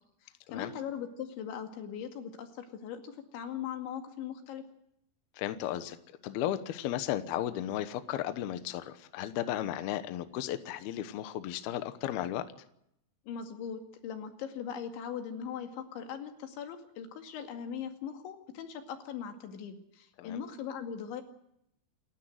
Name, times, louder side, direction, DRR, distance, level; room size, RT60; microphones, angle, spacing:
voice 1, 0.2-4.6 13.3-21.2, left 8 dB, 85° left, 6 dB, 4.5 m, -40 dB
voice 2, 5.4-6.0 6.2-12.4 20.2-20.4, left 12 dB, 70° left, 11 dB, 2.8 m, -34 dB
28.5 x 13.0 x 7.9 m, 0.77 s
omnidirectional pair, 5.2 m